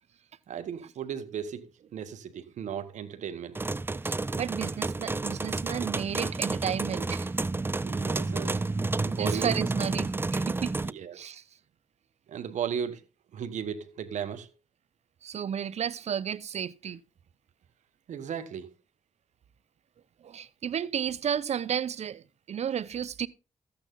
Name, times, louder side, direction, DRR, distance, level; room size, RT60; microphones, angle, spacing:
voice 1, 0.5-3.6 7.8-8.6 9.0-9.6 10.8-11.3 12.3-13.0 13.3-14.5 18.1-18.7, right 8 dB, 85° right, 1.3 m, -36 dB
sound 1, 3.5-10.9, right 3 dB, 20° right, 0.5 m, -30 dB
voice 2, 4.0-7.3 9.1-10.7 11.1-11.4 15.2-17.0 20.2-23.3, right 8 dB, 65° right, 0.7 m, -33 dB
14.0 x 8.9 x 3.8 m
cardioid pair, 75°, 12 cm